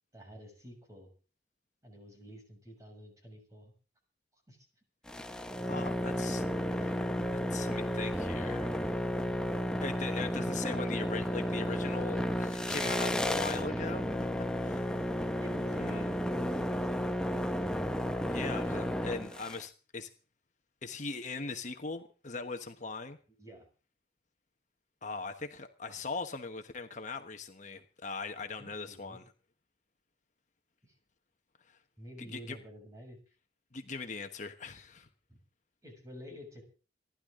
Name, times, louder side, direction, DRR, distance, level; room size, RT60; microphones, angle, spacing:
voice 1, 0.1-1.1 1.8-3.7 4.5-4.7 5.7-6.0 6.7-6.9 15.4-16.8 17.2-17.6 23.4-23.7 25.9-26.0 28.6-29.2 30.8-30.9 32.0-33.2 35.3-35.4 35.8-36.6, equal, 20° right, 2 dB, 7.2 m, -50 dB
sound 1, 5.1-19.6, equal, 5° left, 1.0 m, -33 dB
voice 2, 5.6-6.4 7.5-9.0 9.8-14.9 15.8-16.1 18.3-20.1 20.8-23.2 25.0-29.2 31.7-31.8 32.2-32.6 33.7-35.1, left 4 dB, 45° left, 6 dB, 1.3 m, -40 dB
27.5 x 12.0 x 3.8 m, 0.37 s
head